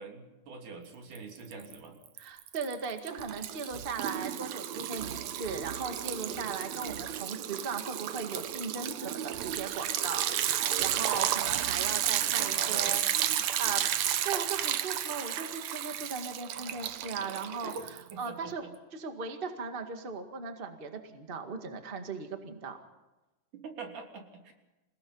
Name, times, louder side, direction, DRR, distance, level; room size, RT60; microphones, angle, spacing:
voice 1, 0.0-2.0 11.2-11.3 12.1-13.1 13.4-13.5 17.6-17.8 18.1-18.7 23.6-24.5, right 4 dB, 90° right, 2 dB, 4.6 m, -44 dB
Liquid, 1.2-1.7 2.1-18.3, right 11 dB, 70° right, 2.1 m, -32 dB
voice 2, 2.2-13.0 13.6-13.8 14.2-17.7 18.2-18.6 18.9-22.8, right 5 dB, 20° right, 5 dB, 1.6 m, -38 dB
28.0 x 18.0 x 5.6 m, 1.0 s
omnidirectional pair, 3.5 m